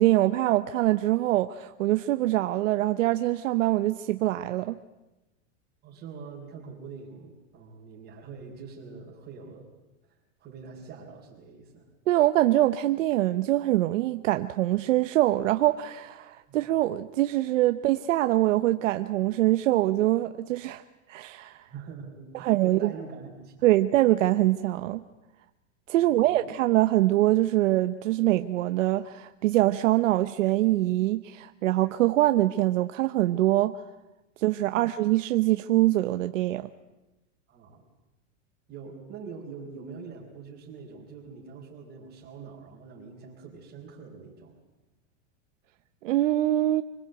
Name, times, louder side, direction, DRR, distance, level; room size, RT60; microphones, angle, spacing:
voice 1, 0.0-4.8 12.1-20.8 21.1-21.7 22.3-22.9 23.6-25.0 25.9-33.8 34.4-36.7 46.0-46.8, right 15 dB, 85° right, 9 dB, 1.0 m, -24 dB
voice 2, 5.8-9.7 10.0-11.9 16.5-16.6 21.7-23.5 26.0-26.5 37.5-37.9 38.7-44.6, right 5 dB, 25° right, -5 dB, 4.3 m, -44 dB
25.5 x 20.5 x 8.0 m, 1.0 s
supercardioid pair, 165°, 38 cm